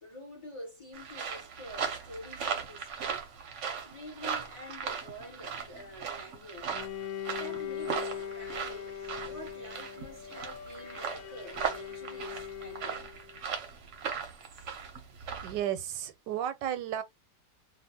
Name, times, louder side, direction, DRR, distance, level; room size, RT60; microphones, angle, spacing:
voice 1, 0.0-3.2 3.8-6.7 7.3-8.9 9.2-13.0, equal, 25° left, 0.8 m, -47 dB
sound 1, 0.9-15.6, right 6 dB, 55° right, 0.9 m, -38 dB
Bowed string instrument, 6.7-13.4, left 8 dB, 75° left, 1.1 m, -41 dB
voice 2, 15.4-17.0, right 10 dB, 90° right, 1.3 m, -33 dB
2.7 x 2.4 x 2.7 m
omnidirectional pair, 1.8 m